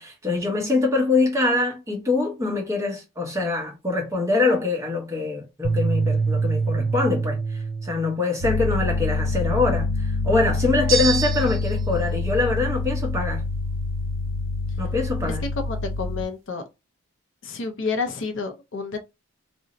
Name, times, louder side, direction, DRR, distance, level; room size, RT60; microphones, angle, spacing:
voice 1, 0.0-13.4 14.8-15.4, left 3 dB, 15° right, 0.8 m, -24 dB
sound 1, 5.6-8.1, right 4 dB, 40° right, 0.3 m, -24 dB
sound 2, 8.4-16.2, left 3 dB, 85° left, 1.0 m, -26 dB
sound 3, 10.9-11.9, right 5 dB, 65° right, 0.6 m, -26 dB
voice 2, 15.3-16.6 17.4-19.0, left 4 dB, 60° left, 0.5 m, -30 dB
2.6 x 2.1 x 3.8 m
head